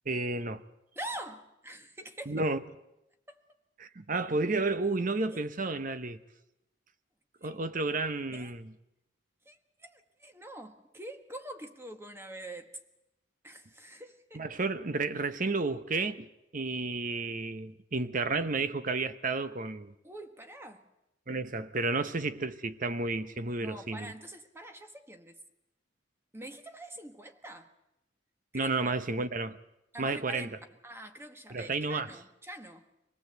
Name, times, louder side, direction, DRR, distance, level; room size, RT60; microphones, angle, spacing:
voice 1, 0.1-0.6 2.3-2.6 3.8-6.2 7.4-8.7 14.3-19.9 21.3-24.1 28.5-29.6 30.0-30.6 31.5-32.1, right 3 dB, 45° right, 0.9 m, -32 dB
voice 2, 0.9-2.4 3.3-3.4 5.3-5.4 7.4-7.6 8.3-8.5 9.4-12.7 13.4-14.4 20.0-20.9 23.6-25.4 26.3-27.7 28.5-29.0 29.9-30.5 30.8-32.9, right 1 dB, 15° right, 1.4 m, -45 dB
25.0 x 18.0 x 8.0 m
head